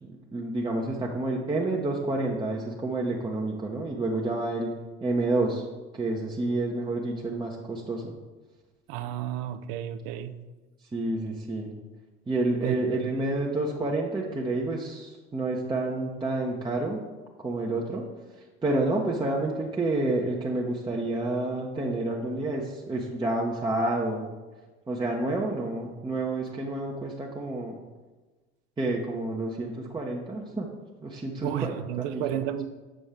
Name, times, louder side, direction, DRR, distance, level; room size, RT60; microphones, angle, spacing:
voice 1, 0.0-4.7 5.0-5.7 5.9-8.1 10.9-11.7 12.3-17.0 17.4-18.0 18.3-24.3 24.9-27.8 28.8-30.7 31.0-31.8 32.1-32.2, right 2 dB, 15° right, -2 dB, 0.8 m, -29 dB
voice 2, 8.9-10.4 12.6-13.1 31.4-32.7, right 11 dB, 50° right, 11 dB, 0.5 m, -32 dB
7.4 x 6.2 x 3.4 m, 1.2 s
figure-of-eight pair, 70°, 35 cm